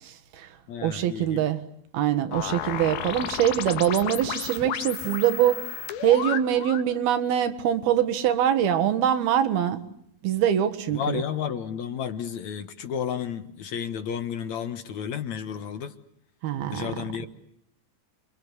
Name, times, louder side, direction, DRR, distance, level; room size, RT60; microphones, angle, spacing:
voice 1, 0.0-0.5 0.8-1.6 1.9-5.7 6.0-9.8 10.2-11.2 16.4-16.9, right 10 dB, 85° right, 3.5 m, -24 dB
voice 2, 0.7-1.5 10.9-15.9 16.7-17.3, left 8 dB, 60° left, 2.2 m, -32 dB
sound 1, 2.3-6.9, left 10 dB, 80° left, 3.4 m, -33 dB
28.5 x 24.5 x 8.1 m
omnidirectional pair, 4.3 m